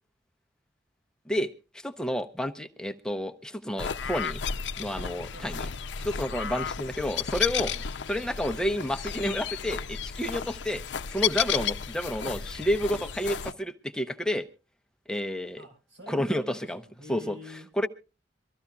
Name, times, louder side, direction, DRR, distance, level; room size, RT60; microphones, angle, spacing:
voice 1, 1.3-4.4 4.8-5.7 6.0-7.7 8.1-10.8 11.1-14.5 15.1-15.6 16.1-16.8 17.1-17.4 17.8-17.9, equal, 5° left, 7 dB, 0.7 m, -30 dB
sound 1, 3.8-13.5, left 8 dB, 75° left, 0.6 m, -33 dB
voice 2, 5.3-5.8 7.7-7.8 15.6-17.7, left 1 dB, 85° right, 2 dB, 4.7 m, -46 dB
24.0 x 14.0 x 2.3 m, 0.33 s
head